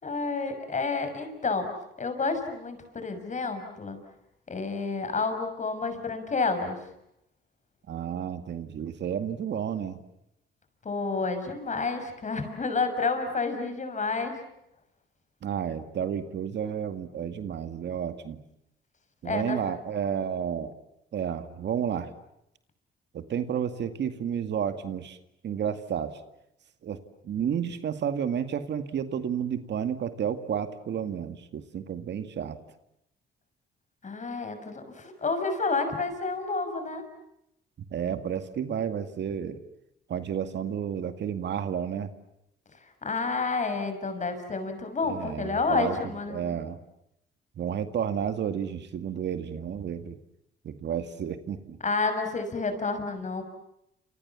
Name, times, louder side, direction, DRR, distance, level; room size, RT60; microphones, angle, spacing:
voice 1, 0.0-1.7 2.0-4.0 4.5-6.8 10.8-14.3 19.2-19.6 34.0-37.0 43.0-46.4 51.8-53.4, left 4 dB, 40° left, 8 dB, 6.4 m, -29 dB
voice 2, 7.9-10.0 15.4-18.4 19.2-20.7 21.1-22.1 23.1-25.2 25.4-26.1 26.8-27.0 27.2-32.6 37.9-39.6 40.1-42.1 45.1-46.0 46.3-46.8 47.6-50.2 50.6-51.8, right 8 dB, 60° right, 9 dB, 2.2 m, -31 dB
29.0 x 28.0 x 7.3 m, 0.82 s
cardioid pair, 90°, 20 cm